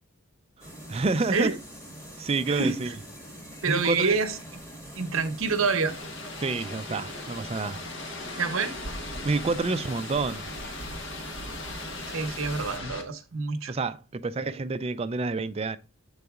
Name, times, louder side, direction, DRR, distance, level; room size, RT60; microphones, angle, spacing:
sound 1, 0.6-12.8, equal, 15° left, 1.5 m, -44 dB
voice 1, 0.9-1.5 2.2-2.9 3.7-4.2 6.4-7.8 9.2-10.5 13.7-15.8, right 3 dB, 30° right, 0.4 m, -28 dB
voice 2, 2.5-2.8 3.6-4.4 4.9-6.0 8.4-8.8 12.1-13.7, right 4 dB, 70° right, 0.9 m, -27 dB
sound 2, 5.9-13.0, left 2 dB, 55° left, 1.4 m, -38 dB
7.8 x 4.1 x 3.6 m
head